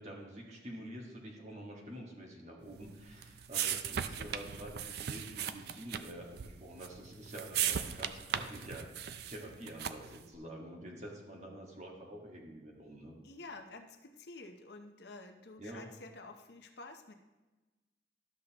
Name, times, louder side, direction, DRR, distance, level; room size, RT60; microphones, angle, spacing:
voice 1, 0.0-13.2 15.6-15.9, right 1 dB, 35° right, -1 dB, 1.6 m, -48 dB
sound 1, 2.8-10.2, right 9 dB, 55° right, 0.4 m, -38 dB
voice 2, 13.2-17.1, left 3 dB, 60° left, 5 dB, 0.7 m, -50 dB
12.5 x 6.6 x 2.9 m, 1.1 s
head